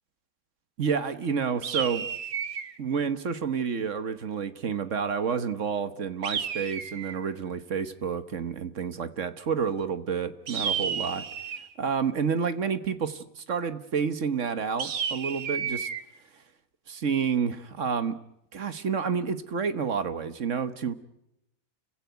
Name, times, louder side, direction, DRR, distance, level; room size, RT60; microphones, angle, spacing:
voice 1, 0.8-2.1 2.8-11.3 11.8-15.9 16.9-18.2 18.5-20.9, right 6 dB, 60° right, 12 dB, 1.5 m, -29 dB
sound 1, 1.6-2.8 6.2-7.3 10.5-11.7 14.8-16.0, right 7 dB, 75° right, 1.7 m, -32 dB
29.5 x 16.5 x 9.3 m, 0.83 s
omnidirectional pair, 1.5 m